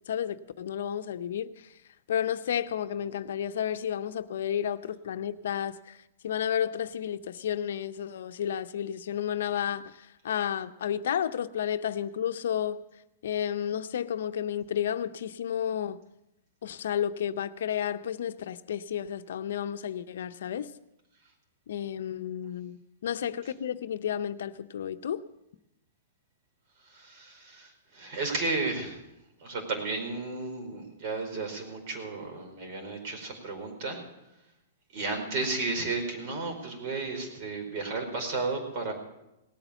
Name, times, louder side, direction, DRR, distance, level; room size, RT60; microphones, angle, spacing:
voice 1, 0.1-1.7 2.1-6.0 6.2-12.8 13.2-16.0 16.6-20.7 21.7-25.2, left 9 dB, 70° left, 0.6 m, -32 dB
voice 2, 26.8-29.0 29.4-34.0 34.9-38.9, right 3 dB, 50° right, 4.8 m, -33 dB
18.5 x 9.0 x 7.0 m
hypercardioid pair, 125°, 0 cm